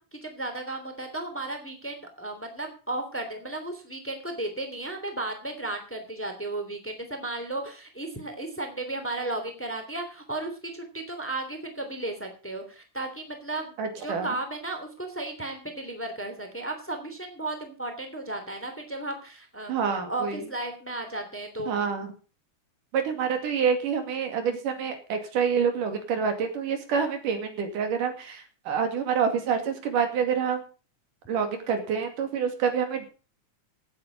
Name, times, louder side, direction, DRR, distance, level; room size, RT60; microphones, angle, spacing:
voice 1, 0.0-13.8 14.0-19.7 20.1-21.8, right 2 dB, 5° left, 6 dB, 2.5 m, -34 dB
voice 2, 13.8-14.3 19.7-20.4 21.7-22.1 22.9-30.6 31.3-33.1, right 6 dB, 85° right, 6 dB, 3.9 m, -27 dB
17.0 x 8.5 x 5.2 m, 0.36 s
omnidirectional pair, 3.6 m